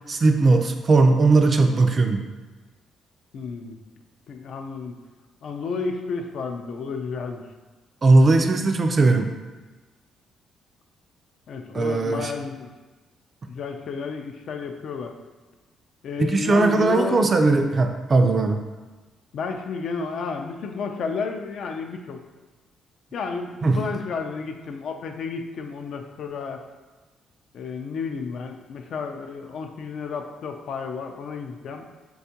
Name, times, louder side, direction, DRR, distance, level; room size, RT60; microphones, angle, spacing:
voice 1, 0.1-2.2 8.0-9.3 11.7-12.3 16.2-18.6 23.6-23.8, right 3 dB, 40° right, 5 dB, 0.3 m, -18 dB
voice 2, 3.3-3.8 4.3-5.0 5.4-7.4 11.5-12.7 13.5-15.2 16.0-17.3 19.3-22.2 23.1-26.6 27.5-31.9, left 5 dB, 65° left, 5 dB, 0.3 m, -32 dB
4.2 x 2.3 x 2.7 m, 1.2 s
cardioid pair, 90°, 0 cm